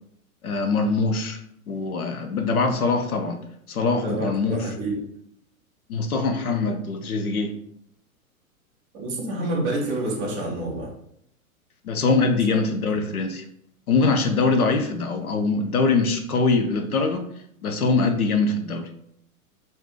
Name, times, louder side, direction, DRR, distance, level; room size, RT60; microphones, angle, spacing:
voice 1, 0.4-1.4 1.7-3.4 3.7-4.6 5.9-7.5 11.8-13.4 13.9-17.2 17.6-18.9, left 3 dB, 80° left, 5 dB, 0.6 m, -23 dB
voice 2, 4.0-5.0 8.9-10.9 12.7-13.0, right 1 dB, 15° right, -1 dB, 0.3 m, -28 dB
2.6 x 2.4 x 3.5 m, 0.70 s
figure-of-eight pair, 100°, 43 cm